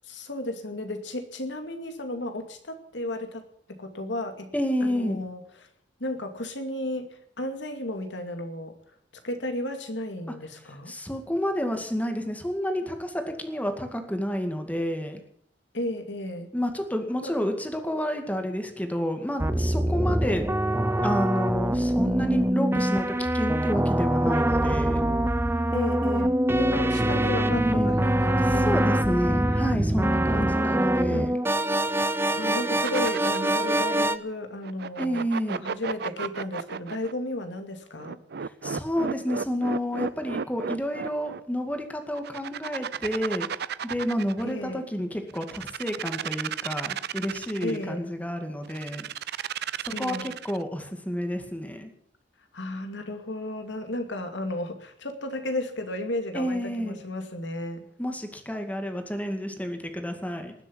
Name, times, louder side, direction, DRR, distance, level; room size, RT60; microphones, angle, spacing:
voice 1, 0.0-3.4 3.7-4.5 4.8-5.4 6.0-7.1 7.4-8.8 9.2-10.9 15.7-16.5 17.2-17.3 20.2-20.5 25.7-29.2 30.3-30.6 31.1-31.3 32.4-38.2 44.4-44.9 47.6-48.0 49.9-50.3 52.5-57.8, left 1 dB, 70° left, 6 dB, 2.3 m, -34 dB
voice 2, 4.5-5.2 10.9-15.2 16.5-20.5 21.0-25.0 27.5-28.0 28.6-31.4 35.0-35.6 38.6-43.5 43.8-49.1 49.8-51.9 56.3-57.0 58.0-60.5, equal, 10° left, 5 dB, 2.1 m, -29 dB
sound 1, 19.4-34.2, right 1 dB, 15° right, 0.7 m, -24 dB
sound 2, 32.8-33.7 34.6-37.1 38.0-41.4 42.2-44.5 45.3-47.8 48.7-50.6, right 7 dB, 60° right, 0.5 m, -33 dB
19.5 x 7.7 x 8.6 m, 0.68 s
head